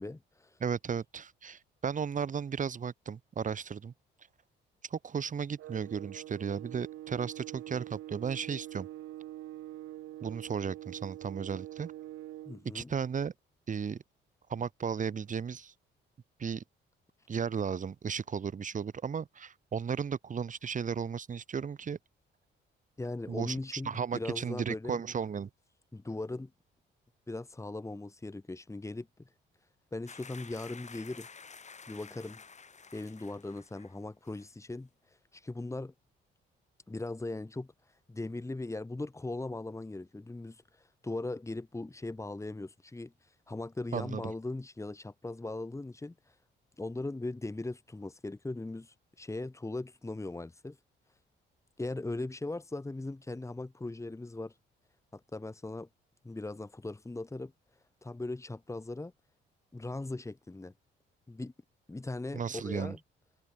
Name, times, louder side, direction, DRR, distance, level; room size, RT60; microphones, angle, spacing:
voice 1, 0.0-0.6 12.5-12.9 23.0-25.0 25.9-26.5 27.3-29.3 29.9-31.3 31.9-32.4 32.9-35.9 36.9-37.7 38.1-46.3 46.8-50.8 51.8-54.5 55.1-55.9 56.2-57.5 58.0-59.1 59.7-60.7 61.3-61.5 61.9-63.0, left 2 dB, 15° left, 2.7 m, -39 dB
voice 2, 0.6-3.9 4.9-8.9 10.2-11.9 12.7-13.3 13.7-14.0 14.5-15.7 16.4-16.6 17.3-22.0 23.3-25.5 43.9-44.3 62.3-63.0, right 6 dB, 40° right, 1.5 m, -35 dB
sound 1, 5.6-12.6, right 15 dB, 85° right, 5.5 m, -45 dB
sound 2, 30.1-34.0 34.2-34.5, left 5 dB, 35° left, 3.9 m, -51 dB
cardioid pair, 90°, 20 cm